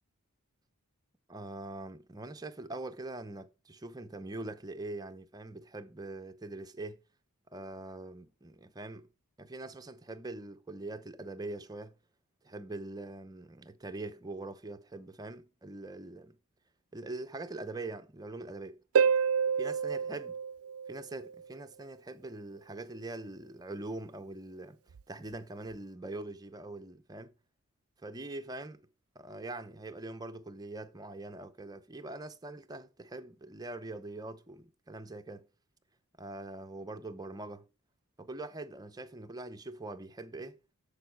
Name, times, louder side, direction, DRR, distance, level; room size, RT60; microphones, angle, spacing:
voice 1, 1.3-7.0 7.5-9.1 9.4-12.0 12.4-16.4 16.9-18.8 19.6-20.3 20.9-24.8 25.1-27.3 28.0-28.8 29.1-35.5 36.2-37.7 38.2-40.6, right 2 dB, 15° right, 0.7 m, -43 dB
Harp, 18.9-21.4 24.9-25.0, right 6 dB, 70° right, 0.4 m, -29 dB
7.0 x 6.9 x 4.5 m
head